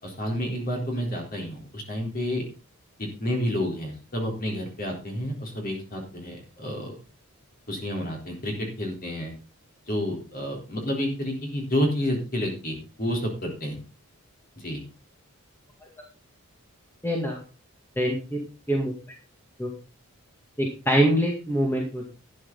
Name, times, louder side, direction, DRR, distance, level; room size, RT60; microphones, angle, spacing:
voice 1, 0.0-2.4 3.0-7.0 7.7-9.3 9.9-13.8 14.6-14.8, equal, 40° left, 1 dB, 4.0 m, -30 dB
voice 2, 17.0-17.4 18.0-18.4 18.7-18.9 19.6-19.7 20.6-22.1, equal, 10° left, 0 dB, 2.1 m, -24 dB
11.5 x 9.8 x 4.0 m, 0.32 s
head